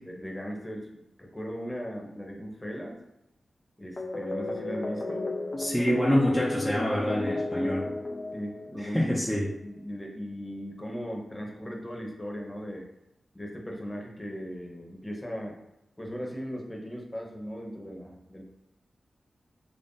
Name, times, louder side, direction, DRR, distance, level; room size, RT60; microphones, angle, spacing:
voice 1, 0.1-3.0 3.8-5.3 7.6-7.7 8.3-9.1 9.6-12.9 13.3-15.6 16.0-18.4, equal, 15° left, 0 dB, 1.0 m, -38 dB
sound 1, 4.0-9.1, left 2 dB, 40° left, 0.5 m, -33 dB
voice 2, 5.6-7.9 8.8-9.5, equal, ahead, -5 dB, 0.7 m, -26 dB
3.2 x 2.6 x 3.9 m, 0.88 s
cardioid pair, 45°, 0 cm